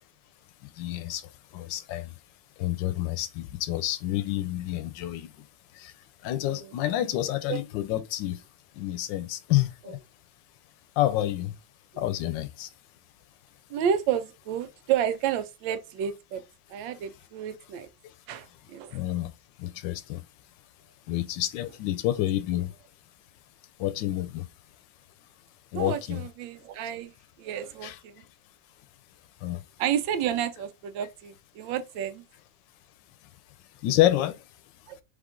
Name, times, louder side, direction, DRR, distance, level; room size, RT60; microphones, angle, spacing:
voice 1, 0.6-1.2 1.5-2.1 2.6-5.3 5.7-5.9 6.2-8.4 8.8-10.0 11.0-11.5 12.0-12.7 18.9-19.3 19.6-20.2 21.1-22.7 23.8-24.5 25.7-26.2 27.8-28.0 29.4-29.6 33.8-34.4, left 14 dB, 80° left, 1.2 m, -28 dB
voice 2, 6.4-7.0 7.5-7.6 9.8-9.9 13.7-16.4 16.7-17.9 18.3-19.0 25.7-27.1 27.4-28.2 29.8-32.2 34.9-35.0, right 9 dB, 80° right, 1.3 m, -31 dB
3.6 x 3.6 x 3.6 m
omnidirectional pair, 2.0 m